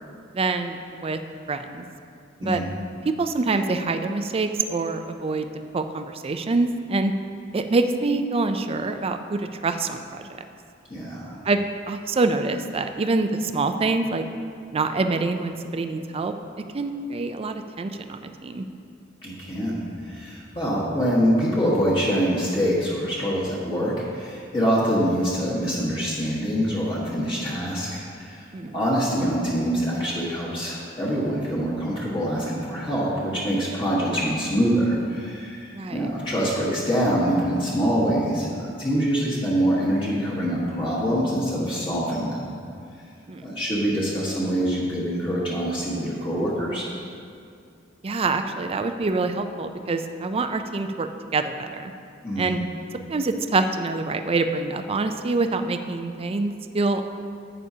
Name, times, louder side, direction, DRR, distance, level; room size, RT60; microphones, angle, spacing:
voice 1, 0.3-1.2 1.5-1.8 2.4-2.6 3.0-5.5 5.7-7.1 7.5-10.4 11.4-14.2 14.7-16.3 16.7-18.7 28.5-28.8 35.7-36.1 43.3-43.4 48.0-51.1 51.3-51.9 52.4-52.6 53.1-57.0, right 3 dB, 30° right, 8 dB, 0.4 m, -25 dB
voice 2, 10.9-11.4 19.2-28.5 28.7-42.5 43.4-46.9 52.2-52.5, equal, 25° left, -7 dB, 1.4 m, -25 dB
11.0 x 8.6 x 2.8 m, 2.4 s
head